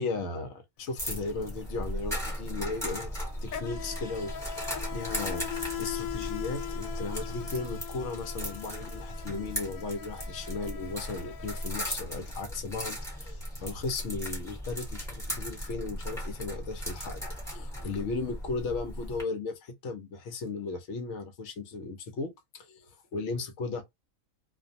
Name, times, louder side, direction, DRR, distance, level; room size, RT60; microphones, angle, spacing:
voice 1, 0.0-3.1 3.4-5.5 5.8-17.2 17.5-23.8, left 3 dB, 65° left, 0.9 m, -36 dB
Insect, 0.8-1.0 1.3-12.3, left 10 dB, 85° left, 1.0 m, -41 dB
sound 1, 1.0-19.2, equal, ahead, 0.9 m, -37 dB
2.5 x 2.2 x 2.6 m
omnidirectional pair, 1.4 m